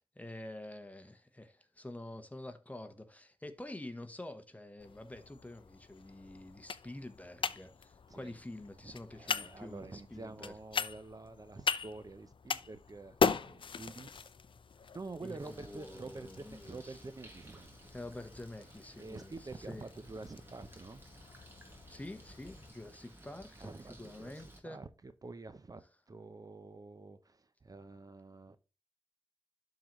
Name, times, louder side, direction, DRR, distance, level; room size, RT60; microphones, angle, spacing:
voice 1, 0.0-10.5 15.2-17.0 17.9-19.3 19.7-19.8 21.9-23.7 24.0-24.8, left 1 dB, 15° left, 1.0 m, -47 dB
sound 1, 4.8-22.7, left 6 dB, 65° left, 0.5 m, -40 dB
voice 2, 8.1-8.4 8.8-14.3 14.9-17.8 19.0-21.0 23.6-28.6, right 3 dB, 40° right, 0.6 m, -48 dB
Bird, 15.4-24.6, right 1 dB, 25° right, 2.0 m, -56 dB
11.5 x 4.0 x 3.0 m
wide cardioid pair, 75°, 9 cm